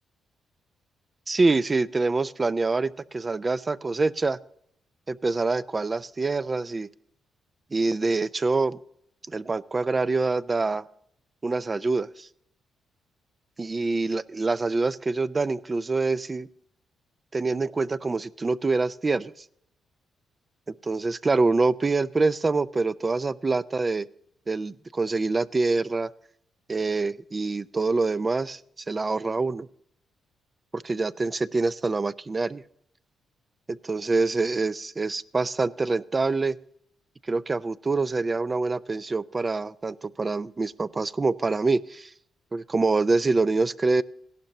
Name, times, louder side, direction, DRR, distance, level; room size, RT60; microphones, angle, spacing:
voice 1, 1.3-4.4 5.1-6.9 7.7-8.8 9.3-10.9 11.4-12.3 13.6-16.5 17.3-19.3 20.7-24.1 24.5-26.1 26.7-28.6 28.9-29.7 30.7-32.6 33.7-36.6 37.3-42.1 42.5-44.0, right 3 dB, 30° right, 15 dB, 0.4 m, -25 dB
16.0 x 12.0 x 2.8 m, 0.72 s
cardioid pair, 75°, 0 cm